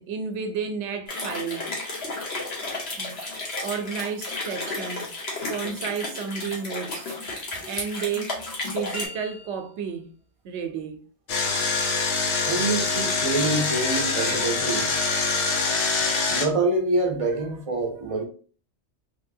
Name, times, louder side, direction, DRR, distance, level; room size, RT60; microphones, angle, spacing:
voice 1, 0.0-1.7 3.0-3.2 3.6-5.1 5.5-7.1 7.6-8.3 8.6-10.1 10.4-11.0, right 6 dB, 75° right, 0.9 m, -32 dB
sound 1, 1.1-9.1, left 2 dB, 65° left, 1.3 m, -33 dB
sound 2, 8.9-10.0, equal, 35° left, 0.9 m, -39 dB
Engine, 11.3-16.4, left 4 dB, 85° left, 1.0 m, -24 dB
voice 2, 12.4-14.9 16.3-18.2, right 2 dB, 35° right, 0.6 m, -26 dB
3.4 x 2.9 x 2.6 m
omnidirectional pair, 1.2 m